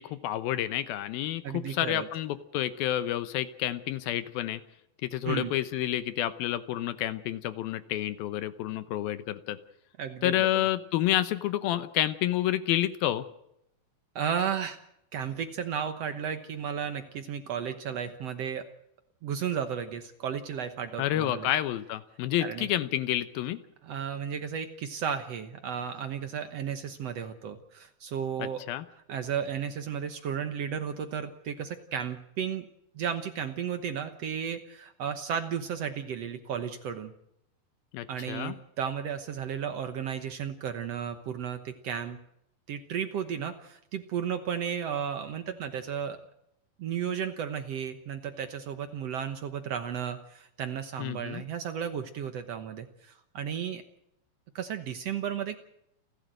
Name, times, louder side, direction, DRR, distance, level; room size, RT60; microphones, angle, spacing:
voice 1, 0.0-4.6 5.0-9.6 10.2-13.2 21.0-23.6 28.4-28.8 37.9-38.6 51.0-51.4, left 13 dB, 75° left, 13 dB, 2.7 m, -29 dB
voice 2, 1.4-2.1 5.2-5.5 10.0-10.7 14.1-14.8 15.1-18.6 19.2-21.5 22.4-22.7 23.8-28.6 29.1-32.6 32.9-37.1 38.1-42.2 42.7-46.2 46.8-53.8 54.5-55.6, right 8 dB, 70° right, 8 dB, 1.5 m, -34 dB
29.5 x 12.0 x 7.7 m, 0.79 s
omnidirectional pair, 4.4 m